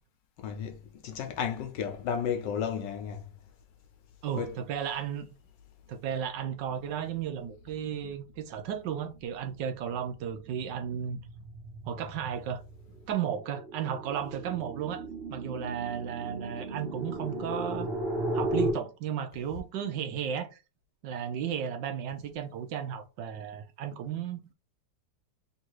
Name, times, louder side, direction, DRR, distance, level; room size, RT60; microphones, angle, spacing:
voice 1, 0.4-3.3 4.4-4.5, left 7 dB, 80° left, 1.4 m, -33 dB
voice 2, 4.2-5.3 5.9-11.2 11.8-12.6 13.0-15.0 15.3-17.9 18.3-20.5 21.0-24.4, right 8 dB, 80° right, 1.4 m, -34 dB
sound 1, 9.0-9.4 9.8-18.7, right 1 dB, 40° right, 1.3 m, -36 dB
3.6 x 2.6 x 4.6 m
omnidirectional pair, 2.0 m